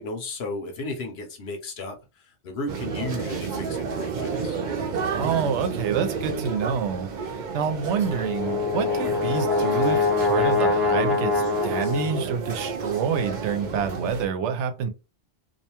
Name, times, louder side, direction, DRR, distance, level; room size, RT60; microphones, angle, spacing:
voice 1, 0.0-4.6 9.0-9.2, left 2 dB, 70° left, 1.0 m, -35 dB
sound 1, 2.7-14.3, right 5 dB, 55° right, 0.6 m, -31 dB
voice 2, 5.1-14.9, right 6 dB, 90° right, 0.9 m, -27 dB
Brass instrument, 8.0-12.3, left 3 dB, ahead, 0.4 m, -24 dB
2.6 x 2.2 x 2.8 m
omnidirectional pair, 1.1 m